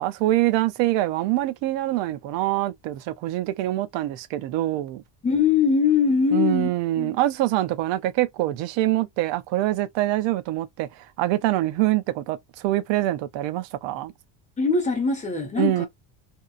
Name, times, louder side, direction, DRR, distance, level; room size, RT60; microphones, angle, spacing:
voice 1, 0.0-5.0 6.3-14.1 15.6-15.9, right 15 dB, 60° right, 0.6 m, -25 dB
voice 2, 5.2-7.1 14.6-15.9, left 5 dB, 15° left, 0.9 m, -22 dB
2.7 x 2.4 x 2.4 m
cardioid pair, 155°, 49 cm